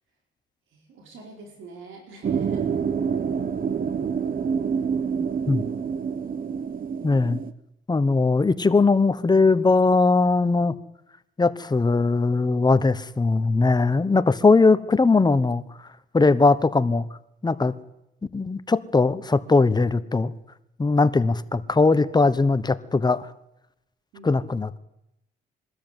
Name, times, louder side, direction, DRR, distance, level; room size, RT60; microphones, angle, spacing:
voice 1, 0.7-2.7 24.1-24.5, right 4 dB, 80° right, 2 dB, 4.6 m, -44 dB
sound 1, 2.2-7.5, right 6 dB, 45° right, 1.2 m, -27 dB
voice 2, 7.0-7.4 7.9-10.7 11.4-15.6 16.1-17.0 17.4-17.7 18.3-20.3 20.8-23.3 24.2-24.8, left 3 dB, 20° left, 14 dB, 1.1 m, -20 dB
22.0 x 13.0 x 9.2 m, 0.86 s
cardioid pair, 90°, 20 cm